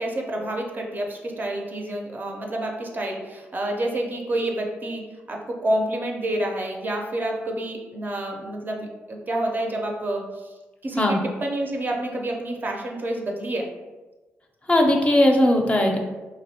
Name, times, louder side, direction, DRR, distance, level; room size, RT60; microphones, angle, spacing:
voice 1, 0.0-10.5 10.8-13.7, right 1 dB, 35° right, 0 dB, 0.5 m, -28 dB
voice 2, 14.7-16.0, left 1 dB, 25° left, 1 dB, 0.5 m, -18 dB
2.5 x 2.0 x 2.7 m, 1.2 s
supercardioid pair, 50°, 5 cm